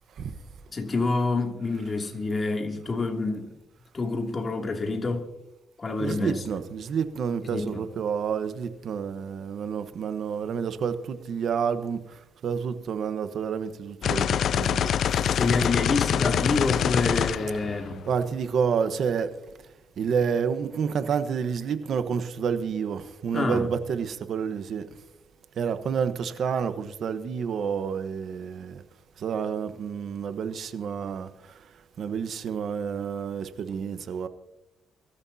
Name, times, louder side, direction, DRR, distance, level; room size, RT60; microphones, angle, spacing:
voice 1, 0.7-3.5 3.9-5.3 5.8-6.4 7.5-7.8 15.3-18.0 23.3-23.7, left 3 dB, 35° left, 2.7 m, -27 dB
voice 2, 6.0-12.0 12.4-14.9 18.1-19.3 20.0-24.8 25.6-28.8 29.2-31.3 32.0-34.3, right 6 dB, 65° right, 1.2 m, -29 dB
sound 1, 14.0-18.2, left 9 dB, 65° left, 0.5 m, -25 dB
23.0 x 13.5 x 2.8 m
cardioid pair, 90°, 0 cm